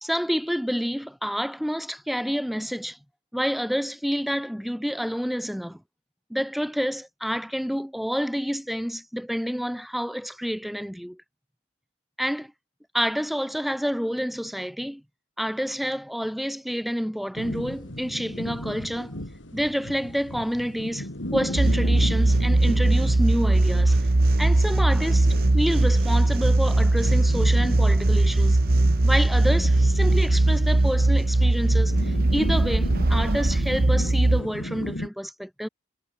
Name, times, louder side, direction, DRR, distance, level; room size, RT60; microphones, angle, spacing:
voice 1, 0.0-3.0 3.3-5.8 6.3-11.2 12.2-12.5 12.9-15.0 15.4-19.1 19.5-24.0 24.4-28.6 29.0-35.7, equal, ahead, 1.0 m, -28 dB
sound 1, 17.4-35.1, left 1 dB, 70° left, 4.3 m, -36 dB
sound 2, 21.6-34.4, right 2 dB, 50° right, 1.0 m, -20 dB
head